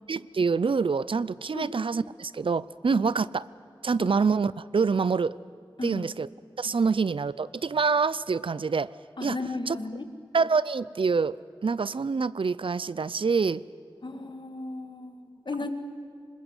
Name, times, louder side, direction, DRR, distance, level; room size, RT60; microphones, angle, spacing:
voice 1, 0.1-3.4 3.8-5.4 5.8-6.3 6.6-8.9 9.2-9.4 9.7-9.8 10.3-13.6, right 5 dB, 80° right, 19 dB, 0.5 m, -26 dB
voice 2, 9.2-10.1 14.0-15.7, left 2 dB, 65° left, 8 dB, 1.9 m, -35 dB
26.0 x 21.0 x 8.1 m, 2.6 s
wide cardioid pair, 70°, 9 cm